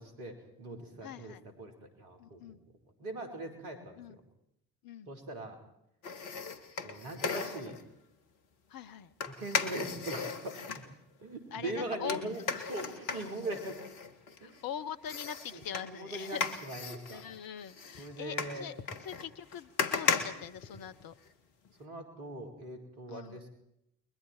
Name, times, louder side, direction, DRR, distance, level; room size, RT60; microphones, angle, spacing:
voice 1, 0.0-2.6 3.0-4.2 5.1-5.6 6.8-7.8 9.3-10.8 11.2-12.4 12.7-13.8 14.4-14.6 15.5-15.6 15.9-17.2 18.0-18.7 21.8-23.5, right 2 dB, 70° right, 5 dB, 4.8 m, -41 dB
voice 2, 1.0-1.4 2.2-2.6 4.0-4.2 4.8-5.1 8.7-9.1 11.5-12.7 14.4-16.5 17.1-21.1 23.1-23.4, left 9 dB, 45° left, 13 dB, 1.2 m, -43 dB
sound 1, 6.0-7.8 9.2-10.9 12.1-14.6 15.1-21.3 21.7-21.8, left 5 dB, 70° left, 2.0 m, -36 dB
30.0 x 22.0 x 4.6 m, 0.76 s
figure-of-eight pair, 55°, 48 cm